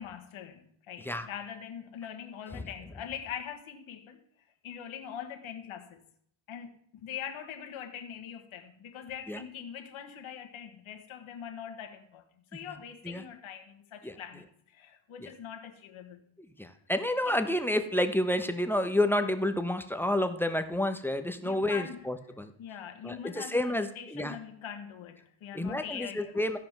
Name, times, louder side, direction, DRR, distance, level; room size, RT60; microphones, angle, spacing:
voice 1, 0.0-4.2 4.6-6.0 6.5-12.2 12.5-16.2 17.2-17.5 21.4-22.1 22.6-26.4, left 8 dB, 80° left, 1.4 m, -43 dB
voice 2, 16.6-22.5 23.0-24.4 25.5-26.6, left 1 dB, 5° left, 0.9 m, -29 dB
14.5 x 5.2 x 6.0 m
cardioid pair, 90°, 48 cm